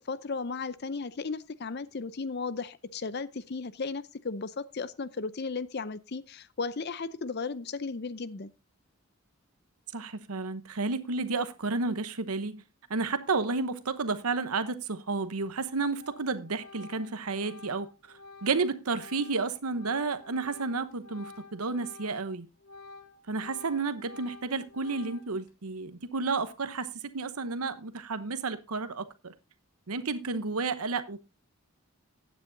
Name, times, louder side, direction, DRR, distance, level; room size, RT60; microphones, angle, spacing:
voice 1, 0.1-8.5, left 4 dB, 50° left, 0.6 m, -35 dB
voice 2, 9.9-12.6 12.9-17.9 18.4-22.5 23.3-29.3 29.9-31.3, right 4 dB, 85° right, 0.9 m, -31 dB
Organ, 15.4-15.6 16.0-22.3 22.6-25.5, left 3 dB, 75° left, 2.3 m, -50 dB
15.5 x 9.4 x 2.7 m
head